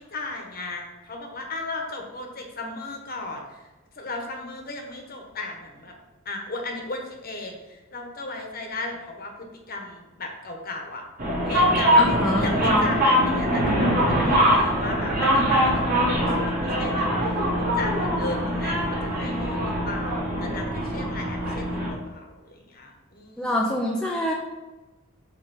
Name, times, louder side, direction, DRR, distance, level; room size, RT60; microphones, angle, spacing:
voice 1, 0.0-3.7 3.9-5.9 6.2-11.0 11.4-23.8, left 2 dB, 40° left, 2 dB, 1.2 m, -36 dB
sound 1, 11.2-21.9, equal, 40° right, 2.0 m, -22 dB
voice 2, 12.0-12.5 23.4-24.3, left 1 dB, 5° left, -3 dB, 0.6 m, -25 dB
8.0 x 3.4 x 5.5 m, 1.1 s
head